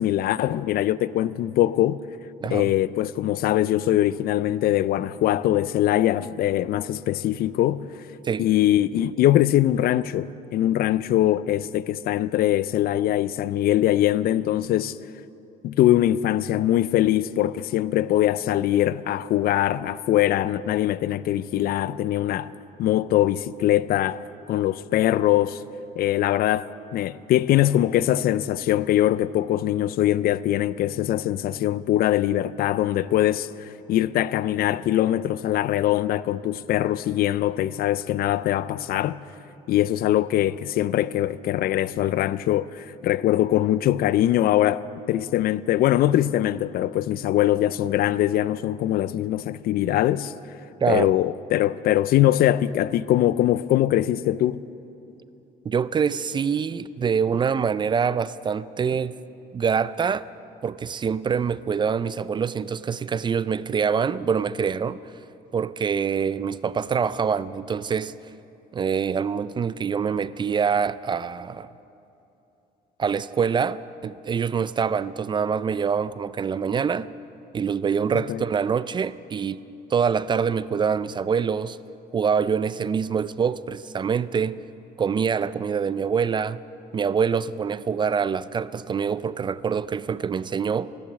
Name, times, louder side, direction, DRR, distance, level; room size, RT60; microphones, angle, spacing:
voice 1, 0.0-2.0 2.5-8.1 8.4-15.0 15.6-22.5 22.8-24.2 24.5-25.6 26.0-39.2 39.7-50.3 50.9-54.6 78.1-78.4, left 13 dB, 65° left, 0.4 m, -22 dB
voice 2, 50.8-51.1 55.7-59.1 59.5-60.3 60.6-65.0 65.5-68.1 68.7-71.7 73.0-77.1 77.5-79.6 79.9-81.8 82.1-84.6 85.0-86.6 86.9-90.9, right 6 dB, 25° right, 0.3 m, -25 dB
15.5 x 12.0 x 7.4 m
cardioid pair, 110°, 17 cm